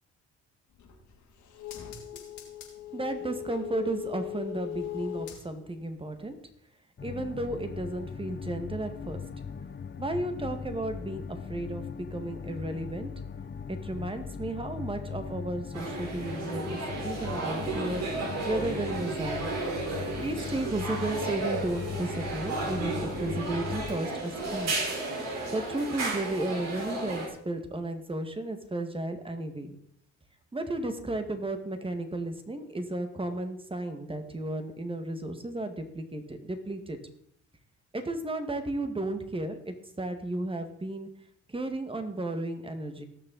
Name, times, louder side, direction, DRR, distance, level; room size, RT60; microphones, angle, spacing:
sound 1, 0.7-5.8 6.2-6.3, left 11 dB, 80° left, 2.8 m, -40 dB
voice 1, 2.9-6.4 7.0-9.2 10.0-13.1 13.7-19.5 20.2-24.7 25.5-29.7 30.5-37.0 37.9-41.1 41.5-43.0, right 1 dB, 20° right, 7 dB, 1.9 m, -34 dB
sound 2, 7.0-24.0, left 6 dB, 35° left, 1.1 m, -39 dB
sound 3, 15.7-27.3, right 3 dB, 60° right, 4.4 m, -33 dB
18.5 x 6.7 x 4.1 m, 0.69 s
cardioid pair, 90°, 30 cm